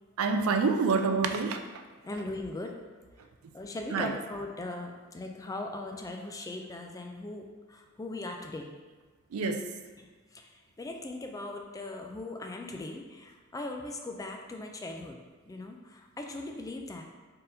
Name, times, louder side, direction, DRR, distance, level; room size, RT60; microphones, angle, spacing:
voice 1, 0.2-1.7 3.9-4.1 9.3-9.7, right 4 dB, 90° right, 6 dB, 0.4 m, -27 dB
voice 2, 2.0-2.8 3.5-8.7 10.0-15.2 15.5-17.0, left 2 dB, 15° left, 3 dB, 0.3 m, -39 dB
4.4 x 3.5 x 2.6 m, 1.4 s
head